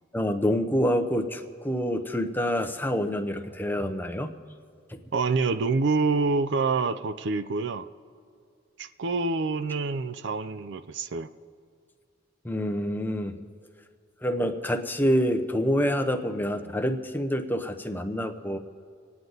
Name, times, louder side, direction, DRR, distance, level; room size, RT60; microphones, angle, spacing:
voice 1, 0.1-4.3 4.9-5.0 12.4-13.3 14.2-18.6, equal, 10° left, 6 dB, 0.7 m, -27 dB
voice 2, 5.1-7.9 8.8-11.3, right 4 dB, 60° right, 11 dB, 0.5 m, -26 dB
27.0 x 9.4 x 3.9 m, 2.3 s
head